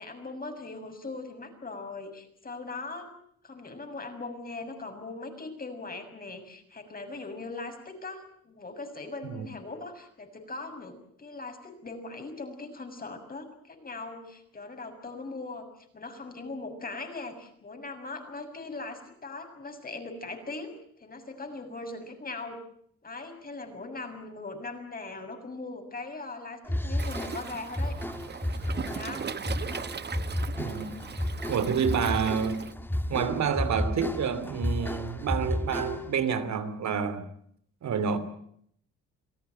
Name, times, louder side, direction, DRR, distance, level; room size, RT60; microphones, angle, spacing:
voice 1, 0.0-3.1 3.4-15.7 15.9-20.7 21.0-22.6 23.0-28.0 28.7-29.4, left 3 dB, 30° left, 6.8 m, -40 dB
sound 1, 26.6-36.2, left 1 dB, 5° left, 2.4 m, -32 dB
Waves surf, 27.0-32.7, right 6 dB, 35° right, 1.0 m, -39 dB
voice 2, 31.5-32.6 33.1-37.3 37.8-38.2, right 6 dB, 65° right, 2.9 m, -28 dB
27.5 x 17.5 x 9.1 m
cardioid pair, 90°, 30 cm